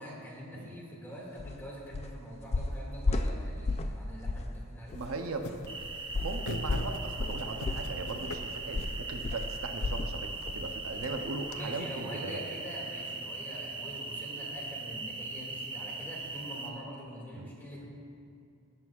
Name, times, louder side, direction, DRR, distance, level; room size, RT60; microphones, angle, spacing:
voice 1, 0.0-5.0 11.5-17.9, equal, 10° left, -5 dB, 2.1 m, -44 dB
sound 1, 1.4-1.6 1.9-2.2 2.5-4.0 4.3-4.5 4.9-5.0 6.1-10.1 10.5-10.7 11.0-11.1, left 2 dB, 30° left, 0.4 m, -32 dB
sound 2, 4.9-11.6, left 2 dB, 90° left, 0.6 m, -45 dB
voice 2, 4.9-5.6 6.2-12.4 17.4-17.5, right 3 dB, 70° right, 4 dB, 0.7 m, -38 dB
sound 3, 5.7-16.7, right 3 dB, 25° right, 0.6 m, -40 dB
17.0 x 7.6 x 2.4 m, 2.5 s
head